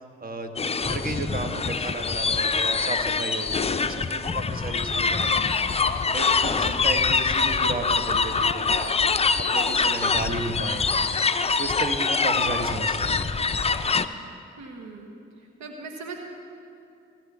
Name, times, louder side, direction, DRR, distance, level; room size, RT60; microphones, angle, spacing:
voice 1, 0.2-0.5 0.8-8.9 9.4-11.0 11.6-13.6, right 2 dB, 30° right, 5 dB, 1.5 m, -34 dB
sound 1, 0.6-14.1, left 4 dB, 20° left, 0.6 m, -24 dB
voice 2, 6.4-6.8 14.6-15.1 15.4-16.2, right 4 dB, 70° right, 3 dB, 1.4 m, -39 dB
16.5 x 7.6 x 7.2 m, 2.5 s
hypercardioid pair, 40°, 29 cm